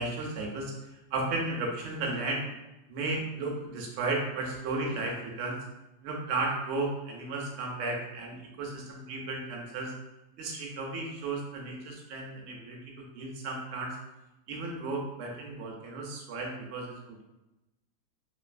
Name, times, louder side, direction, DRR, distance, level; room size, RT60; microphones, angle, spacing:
voice 1, 0.0-2.5 2.9-5.6 6.0-9.9 10.4-14.0 14.5-17.2, right 2 dB, 65° right, -1 dB, 0.7 m, -34 dB
3.0 x 2.5 x 2.5 m, 0.99 s
omnidirectional pair, 1.8 m